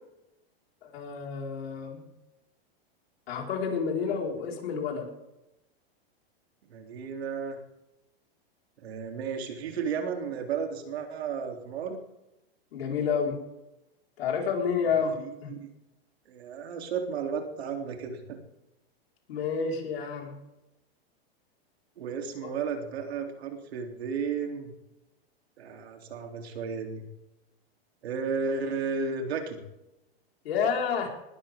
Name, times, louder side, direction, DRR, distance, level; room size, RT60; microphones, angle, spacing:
voice 1, 0.8-2.0 3.3-5.1 12.7-13.4 14.2-15.2 15.4-15.5 19.3-20.3 22.4-22.5 30.4-31.1, left 6 dB, 75° left, 0 dB, 4.7 m, -29 dB
voice 2, 6.7-7.6 8.8-12.0 14.8-15.7 16.3-18.4 22.0-24.7 25.6-27.0 28.0-29.6, right 5 dB, 80° right, 3 dB, 3.3 m, -33 dB
20.0 x 13.0 x 3.7 m, 0.92 s
supercardioid pair, 140°, 31 cm